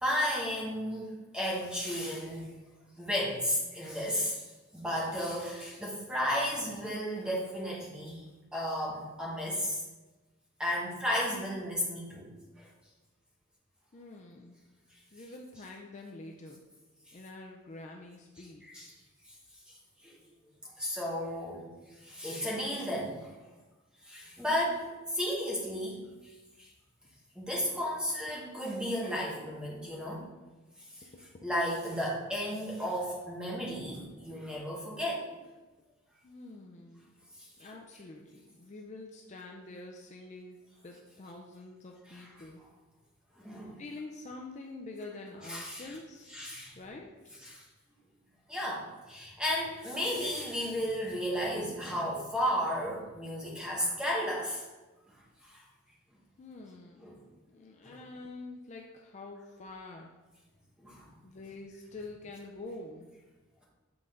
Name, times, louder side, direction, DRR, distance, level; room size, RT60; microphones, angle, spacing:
voice 1, 0.0-2.4 3.0-4.5 4.7-8.2 8.5-9.8 10.6-12.3 12.6-12.7 18.4-18.9 19.3-19.4 19.7-19.8 20.0-20.1 20.6-21.7 22.0-23.3 24.0-26.3 26.6-26.7 27.3-30.2 31.4-35.2 37.4-37.5 42.1-42.3 43.4-43.8 45.5-46.0 46.3-46.8 47.4-47.6 48.5-54.6 55.4-55.6 57.0-57.1 57.8-57.9 60.8-61.1, equal, 5° right, -4 dB, 1.2 m, -33 dB
voice 2, 13.9-14.6 15.1-16.6 17.1-18.9 31.1-31.5 36.2-37.1 37.6-42.6 43.8-46.4 46.8-47.3 56.4-57.0 57.5-60.1 61.2-63.1, left 2 dB, 35° left, 0 dB, 0.4 m, -46 dB
7.7 x 3.9 x 3.6 m, 1.2 s
head